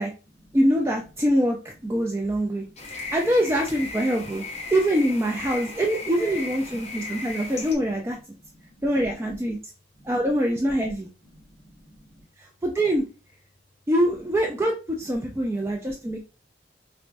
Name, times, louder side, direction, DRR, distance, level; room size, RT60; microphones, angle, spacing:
voice 1, 0.5-1.6 1.8-2.6 2.9-4.4 4.7-8.2 8.8-9.6 10.0-11.1 12.4-13.0 13.9-16.2, equal, 15° right, 0 dB, 0.3 m, -24 dB
voice 2, 2.5-3.1 6.1-6.7 8.4-8.8 9.9-10.1 11.2-12.3 15.5-16.2, left 1 dB, 80° right, 1 dB, 1.1 m, -51 dB
sound 1, 2.8-7.7, left 3 dB, 35° left, 0.6 m, -36 dB
4.5 x 2.1 x 2.5 m, 0.32 s
head